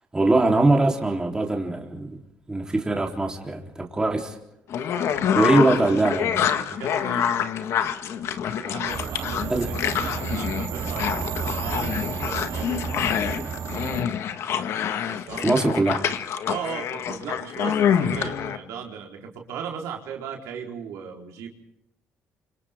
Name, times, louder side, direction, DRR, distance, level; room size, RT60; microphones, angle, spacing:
voice 1, 0.1-2.2 2.5-4.4 5.3-6.4 9.5-9.7 15.4-16.0, right 2 dB, 15° right, 1 dB, 3.8 m, -22 dB
sound 1, 4.7-18.6, left 9 dB, 70° left, 1.7 m, -26 dB
voice 2, 4.9-5.9 6.3-7.4 8.5-13.1 15.1-16.0 16.5-21.5, right 7 dB, 85° right, 1 dB, 4.3 m, -37 dB
sound 2, 8.9-14.0, right 6 dB, 55° right, 3.3 m, -31 dB
29.0 x 27.0 x 3.7 m, 0.85 s
cardioid pair, 100°, 5 cm